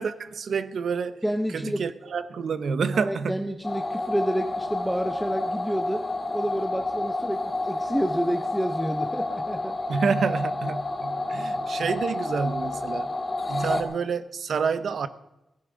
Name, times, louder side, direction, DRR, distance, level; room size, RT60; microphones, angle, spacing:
voice 1, 0.0-1.2 1.5-3.4 9.9-13.1 13.5-15.1, right 5 dB, 65° right, 0.8 m, -28 dB
voice 2, 1.2-1.8 2.9-6.1 6.3-9.8, equal, 5° right, 0.7 m, -29 dB
sound 1, 3.6-13.8, left 2 dB, 20° left, 1.6 m, -30 dB
16.5 x 15.5 x 3.8 m
wide cardioid pair, 145°, 0 cm